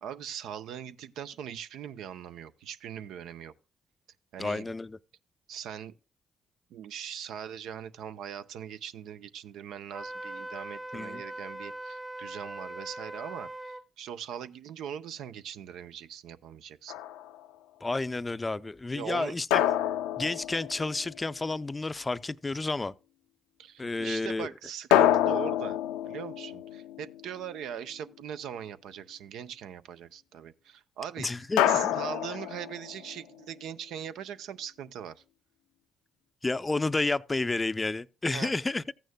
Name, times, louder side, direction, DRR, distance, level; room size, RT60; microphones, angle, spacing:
voice 1, 0.0-3.5 4.3-4.7 5.5-5.9 6.7-16.9 18.9-19.4 23.6-25.8 26.0-31.3 31.7-35.2 38.3-38.5, right 9 dB, 80° right, 0.5 m, -41 dB
voice 2, 4.4-5.0 10.9-11.2 17.8-19.6 20.2-22.9 23.8-24.5 31.2-31.9 36.4-38.8, left 3 dB, 25° left, 0.4 m, -31 dB
Wind instrument woodwind instrument, 9.9-13.8, right 1 dB, 20° right, 1.0 m, -40 dB
sound 1, 16.9-17.5 19.5-21.3 24.9-27.5 31.6-33.2, left 11 dB, 90° left, 0.4 m, -27 dB
14.5 x 9.1 x 2.2 m
supercardioid pair, 55°, 0 cm